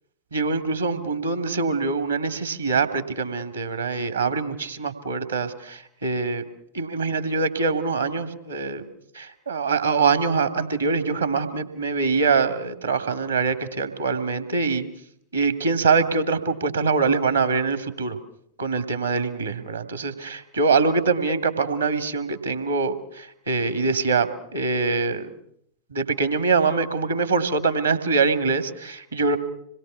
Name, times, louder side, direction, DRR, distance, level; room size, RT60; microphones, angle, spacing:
voice 1, 0.3-6.4 6.7-8.8 9.1-14.8 15.3-18.2 18.6-25.3 25.9-29.4, right 4 dB, 75° right, 9 dB, 2.6 m, -24 dB
27.0 x 21.5 x 5.8 m, 0.69 s
figure-of-eight pair, 90°, 0 cm